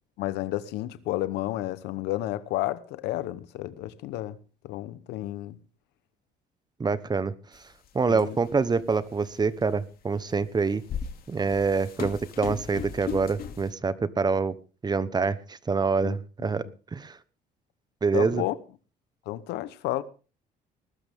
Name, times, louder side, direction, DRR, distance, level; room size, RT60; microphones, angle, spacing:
voice 1, 0.2-4.4 4.6-5.6 8.1-8.4 16.0-16.5 18.1-18.5 19.3-20.0, left 15 dB, 90° left, 1.0 m, -31 dB
voice 2, 6.8-7.3 7.9-10.8 11.3-14.5 14.8-16.6 16.9-17.2 18.0-18.4, right 4 dB, 25° right, 1.1 m, -26 dB
sound 1, 7.5-7.6 8.1-8.6 9.3-9.4 10.4-13.7, left 7 dB, 60° left, 2.5 m, -36 dB
20.0 x 12.5 x 3.6 m
cardioid pair, 110°, 17 cm